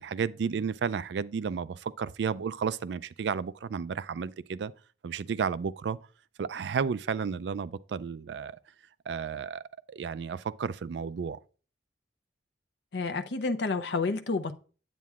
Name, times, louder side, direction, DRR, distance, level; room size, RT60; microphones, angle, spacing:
voice 1, 0.0-4.7 5.0-6.0 6.4-8.6 9.1-9.6 9.9-11.4, right 6 dB, 70° right, 0.4 m, -32 dB
voice 2, 12.9-14.5, left 3 dB, 70° left, 0.6 m, -30 dB
9.1 x 8.3 x 2.4 m
head